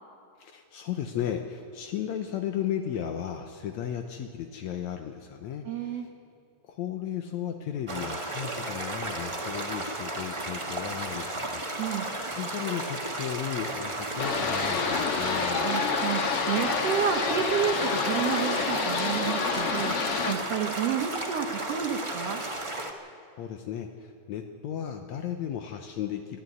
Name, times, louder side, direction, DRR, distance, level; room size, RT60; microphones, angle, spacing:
voice 1, 0.4-6.1 6.6-15.7 23.4-26.4, left 9 dB, 75° left, 5 dB, 2.1 m, -35 dB
voice 2, 5.7-6.1 11.8-12.1 15.6-22.4, right 8 dB, 65° right, 3 dB, 1.9 m, -30 dB
sound 1, 7.9-22.9, right 2 dB, 30° right, 0.5 m, -34 dB
sound 2, 14.2-20.3, left 5 dB, 55° left, 2.2 m, -28 dB
23.0 x 13.0 x 9.4 m, 2.3 s
omnidirectional pair, 3.4 m